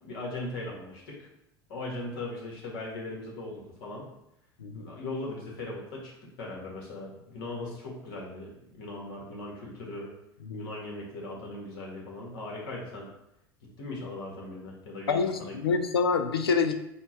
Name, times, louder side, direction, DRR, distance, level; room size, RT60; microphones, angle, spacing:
voice 1, 0.0-1.3 1.7-4.1 4.7-10.1 10.5-13.1 13.8-15.6, left 2 dB, 65° left, -2 dB, 1.5 m, -39 dB
voice 2, 4.6-4.9 10.5-10.7 15.1-16.8, left 5 dB, 85° left, 8 dB, 0.4 m, -27 dB
4.3 x 2.4 x 4.3 m, 0.81 s
hypercardioid pair, 75°, 12 cm